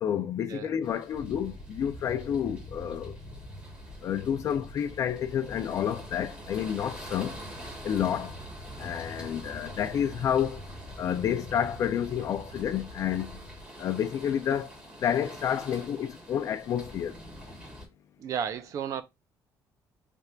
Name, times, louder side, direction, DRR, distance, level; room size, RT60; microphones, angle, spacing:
voice 1, 0.0-3.2 4.0-7.4 7.8-8.3 8.8-10.6 11.0-13.4 13.8-14.7 15.0-17.2, left 9 dB, 45° left, 0.5 m, -29 dB
sound 1, 0.8-17.9, equal, 15° right, 1.4 m, -47 dB
sound 2, 1.1-13.6, left 1 dB, 5° left, 0.6 m, -45 dB
voice 2, 18.2-19.0, right 8 dB, 45° right, 0.6 m, -33 dB
3.4 x 2.5 x 4.4 m
cardioid pair, 170°, 7 cm